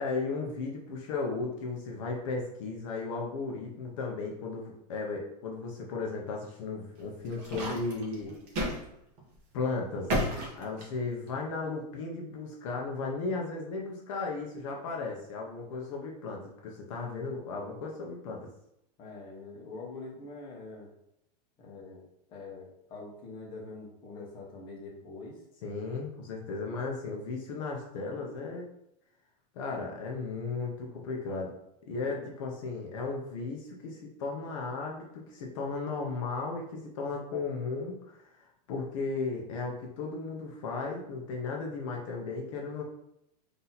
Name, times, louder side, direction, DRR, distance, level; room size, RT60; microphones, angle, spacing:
voice 1, 0.0-8.3 9.5-10.1 10.5-18.5 25.6-28.6 29.5-31.5 31.9-42.8, left 4 dB, 50° left, -1 dB, 0.8 m, -35 dB
sound 1, 7.0-8.8 9.2-9.4 10.1-11.3, equal, 30° right, 1.0 m, -32 dB
voice 2, 19.0-20.9 21.6-22.0 22.3-25.4 32.0-32.3, left 3 dB, 25° left, -2 dB, 0.9 m, -44 dB
4.1 x 2.8 x 4.0 m, 0.81 s
supercardioid pair, 175°, 21 cm